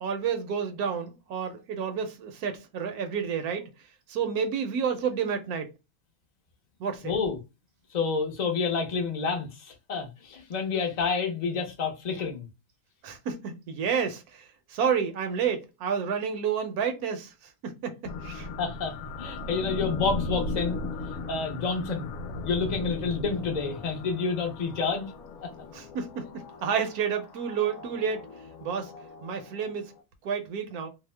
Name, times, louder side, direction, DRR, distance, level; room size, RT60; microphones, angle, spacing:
voice 1, 0.0-3.7 4.1-5.7 6.8-7.1 13.0-17.3 17.6-18.5 25.7-28.3 28.6-28.9 29.2-29.9 30.2-30.9, right 7 dB, 70° right, 1.0 m, -30 dB
voice 2, 7.0-7.4 7.9-12.5 18.6-20.8 21.3-22.1 22.4-25.1, left 4 dB, 50° left, 0.5 m, -29 dB
sound 1, 18.1-30.0, left 3 dB, 70° left, 0.9 m, -37 dB
2.7 x 2.0 x 3.2 m
omnidirectional pair, 1.8 m